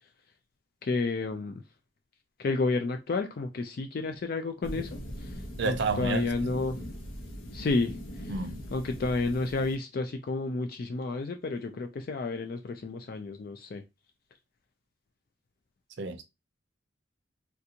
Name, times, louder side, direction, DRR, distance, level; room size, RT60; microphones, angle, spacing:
voice 1, 0.8-1.6 2.4-6.8 7.5-8.4 8.7-13.8, left 3 dB, 50° left, 0.3 m, -31 dB
sound 1, 4.6-9.8, equal, 90° left, 0.9 m, -41 dB
voice 2, 5.6-6.3 8.3-8.7 16.0-16.2, right 3 dB, 65° right, 0.6 m, -30 dB
3.3 x 2.5 x 2.8 m
head